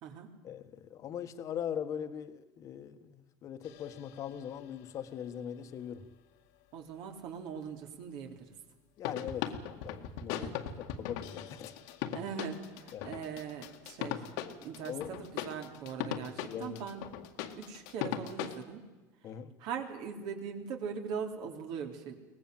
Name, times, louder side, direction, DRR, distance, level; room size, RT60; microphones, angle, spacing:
voice 1, 0.4-6.0 9.0-9.5 9.8-11.7 12.9-13.1 14.9-15.3 16.5-16.8 19.2-19.5, left 9 dB, 40° left, 9 dB, 1.5 m, -41 dB
sound 1, 3.6-4.7 9.0-18.6, left 10 dB, 80° left, 2.0 m, -39 dB
voice 2, 6.7-8.5 10.4-10.5 12.1-14.2 14.6-17.1 17.6-18.8 19.6-22.2, right 6 dB, 60° right, 4 dB, 3.5 m, -41 dB
23.5 x 18.5 x 7.8 m, 1.2 s
cardioid pair, 140°, 8 cm